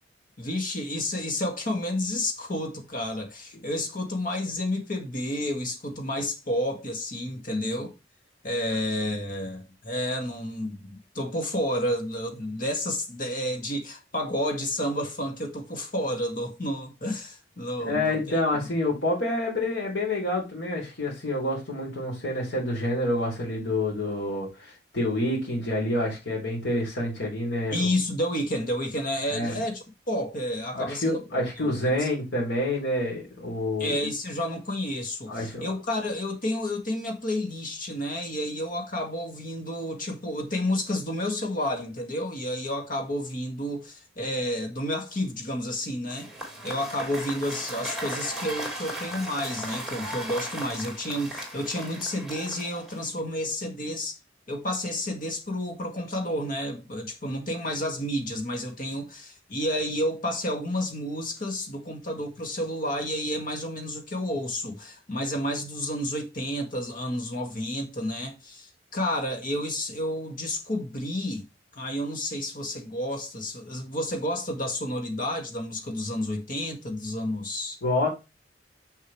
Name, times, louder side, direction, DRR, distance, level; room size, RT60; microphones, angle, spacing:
voice 1, 0.4-7.9 8.4-18.4 27.7-31.7 32.0-32.1 33.8-46.3 46.6-54.1 54.5-71.4 71.7-77.8, left 1 dB, 50° left, 2.0 m, -30 dB
voice 2, 17.8-27.9 29.3-29.6 30.7-34.0 35.3-35.7 77.8-78.1, left 1 dB, 90° left, 3.9 m, -28 dB
Cheering / Applause / Crowd, 46.1-53.2, right 1 dB, ahead, 3.5 m, -37 dB
7.2 x 6.6 x 3.2 m
head